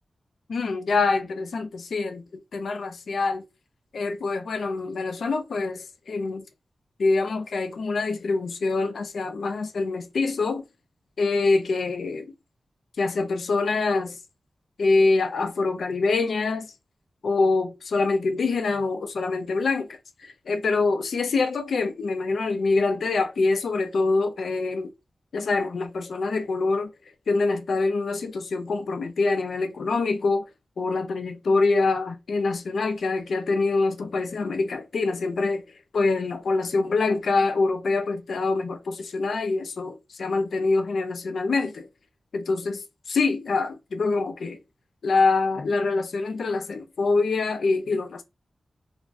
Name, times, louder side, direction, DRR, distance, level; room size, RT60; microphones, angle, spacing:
voice 1, 0.5-3.4 3.9-6.4 7.0-10.6 11.2-12.3 13.0-14.2 14.8-16.7 17.2-24.9 25.3-26.9 27.3-30.5 30.8-35.6 35.9-41.9 42.3-44.6 45.0-48.2, left 3 dB, 75° left, 0.4 m, -25 dB
2.5 x 2.0 x 3.3 m
wide cardioid pair, 155°, 0 cm